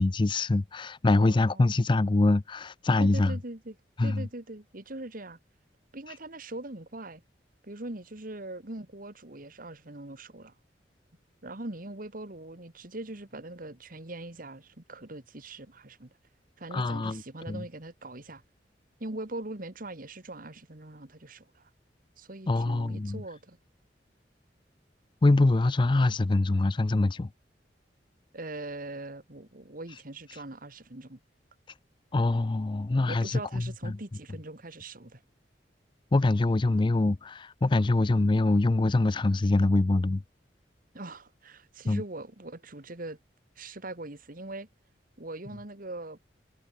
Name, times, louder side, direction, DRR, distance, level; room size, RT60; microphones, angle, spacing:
voice 1, 0.0-3.4 4.0-4.3 16.7-17.2 17.5-17.6 22.5-23.2 25.2-27.3 32.1-33.9 36.1-40.2 41.9-42.0, left 2 dB, 25° left, 0.4 m, -24 dB
voice 2, 1.2-1.8 3.0-3.8 4.0-5.4 5.9-7.2 7.6-10.5 11.4-16.1 16.6-18.4 19.0-21.7 22.2-23.6 28.3-31.2 33.1-35.2 40.9-43.2 43.6-44.7 45.2-46.2, right 2 dB, 50° right, 2.1 m, -41 dB
head